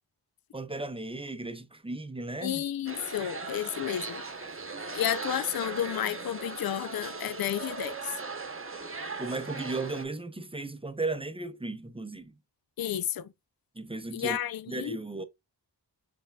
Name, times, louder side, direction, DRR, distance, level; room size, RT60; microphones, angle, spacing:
voice 1, 0.5-2.6 9.2-12.3 13.8-14.4 14.7-15.2, right 2 dB, 15° right, 0.6 m, -35 dB
voice 2, 2.4-4.2 4.9-8.2 12.8-13.3 14.1-15.0, left 11 dB, 55° left, 0.5 m, -32 dB
sound 1, 2.9-10.0, right 4 dB, 30° right, 0.9 m, -38 dB
5.5 x 3.5 x 2.3 m
wide cardioid pair, 55°, 43 cm